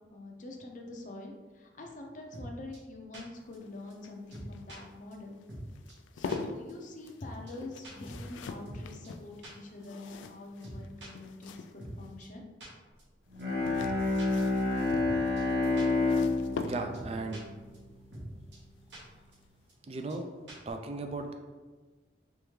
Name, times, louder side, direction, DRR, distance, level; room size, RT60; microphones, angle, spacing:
voice 1, 0.1-5.4 6.1-12.4, left 2 dB, 45° left, 1 dB, 0.5 m, -45 dB
sound 1, 2.3-2.5 2.7-2.8 3.1-3.2 3.5-3.6 3.9-4.0 4.3-4.8 5.1-5.2 5.5-5.6 5.9-6.0 6.3-6.4 6.7-6.8 7.1-7.2 7.5-7.6 7.8-8.8 9.0-9.1 9.4-9.5 9.8-9.9 10.2-10.3 10.6-11.1 11.4-11.5 11.8-11.9 12.2-12.3 12.6-12.7 13.0-13.1 13.4-13.5 13.8-13.9 14.2-15.1 15.4-15.5 15.8-15.9 16.2-16.3 16.5-16.6 16.9-17.4 17.7-17.8 18.1-18.3 18.5-18.6 18.9-19.0 19.3-19.4 19.7-19.8 20.1-20.2 20.5-20.7, right 1 dB, 75° right, 1.4 m, -45 dB
sound 2, 3.4-12.2 13.3-17.2 18.9-19.2 19.4-19.5, left 4 dB, 90° left, 0.3 m, -44 dB
Bowed string instrument, 13.3-18.2, left 2 dB, 55° right, 0.9 m, -29 dB
voice 2, 16.6-17.4 19.9-20.3 20.7-21.3, right 3 dB, 35° right, 5 dB, 0.3 m, -36 dB
3.6 x 3.3 x 3.1 m, 1.3 s
head